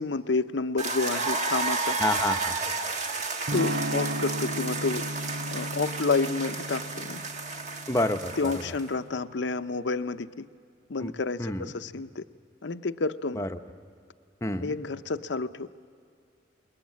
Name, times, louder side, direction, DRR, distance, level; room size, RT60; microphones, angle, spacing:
voice 1, 0.0-2.0 3.5-5.0 5.5-7.2 8.4-10.5 10.9-12.2 12.6-13.5 14.6-15.7, left 3 dB, 75° left, 11 dB, 0.7 m, -29 dB
sound 1, 0.8-8.9, right 3 dB, 40° right, 1.3 m, -32 dB
voice 2, 2.0-2.6 7.9-8.7 11.0-11.1 11.4-11.7 13.4-13.6 14.4-14.7, left 1 dB, 15° left, 6 dB, 0.8 m, -29 dB
Electric guitar / Strum, 3.5-9.2, right 1 dB, 85° right, 1.1 m, -35 dB
28.0 x 22.0 x 7.5 m, 2.3 s
head